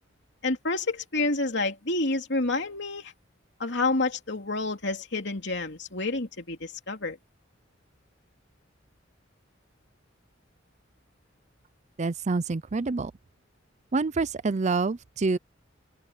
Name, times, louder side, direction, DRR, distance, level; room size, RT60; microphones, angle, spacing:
voice 1, 0.4-3.1 3.6-7.2, left 2 dB, 65° left, 3.1 m, -29 dB
voice 2, 12.0-13.1 13.9-15.4, right 3 dB, 35° right, 0.5 m, -27 dB
open air
head